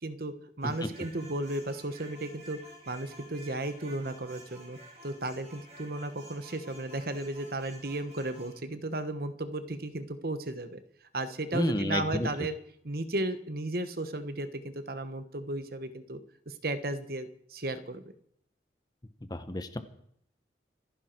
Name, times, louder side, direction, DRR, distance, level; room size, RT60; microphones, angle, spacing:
voice 1, 0.0-10.8 11.1-12.6 12.8-16.2 16.5-18.0, right 2 dB, 55° right, 11 dB, 1.2 m, -35 dB
sound 1, 0.6-8.6, right 1 dB, 40° right, 5.0 m, -52 dB
voice 2, 11.5-12.3 19.3-19.8, left 1 dB, 25° left, 10 dB, 1.1 m, -30 dB
26.5 x 10.0 x 4.6 m, 0.70 s
head